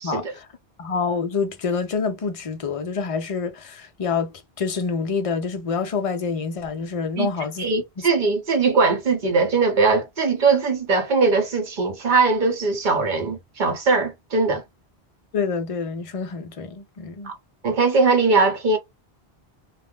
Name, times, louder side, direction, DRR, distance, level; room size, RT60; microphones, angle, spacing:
voice 1, 0.0-0.5 0.8-7.7 8.0-8.1 15.3-17.3, left 5 dB, 45° left, 0.5 m, -27 dB
voice 2, 7.6-14.6 17.2-17.3 17.6-18.8, right 4 dB, 50° right, 1.0 m, -20 dB
2.3 x 2.1 x 3.5 m
omnidirectional pair, 1.1 m